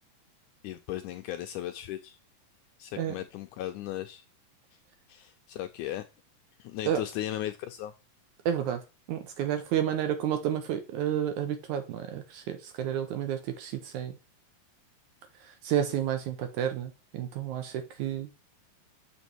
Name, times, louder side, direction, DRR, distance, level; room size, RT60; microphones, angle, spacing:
voice 1, 0.6-2.2 2.8-4.3 5.1-6.0 6.6-7.9, left 13 dB, 85° left, 1.8 m, -36 dB
voice 2, 8.5-8.8 9.1-14.2 15.6-18.3, right 10 dB, 70° right, 2.1 m, -30 dB
7.0 x 5.3 x 4.5 m
omnidirectional pair, 4.0 m